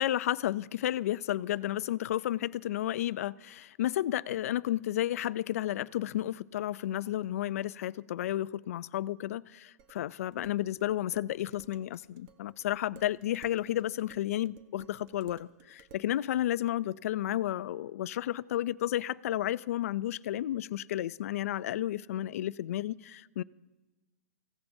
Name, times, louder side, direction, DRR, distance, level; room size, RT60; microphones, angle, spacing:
voice 1, 0.0-23.4, left 13 dB, 65° left, 0.4 m, -32 dB
Dishes pots and pans, 9.8-16.1, right 7 dB, 35° right, 1.0 m, -58 dB
26.0 x 16.5 x 2.7 m
hypercardioid pair, 140°, 9 cm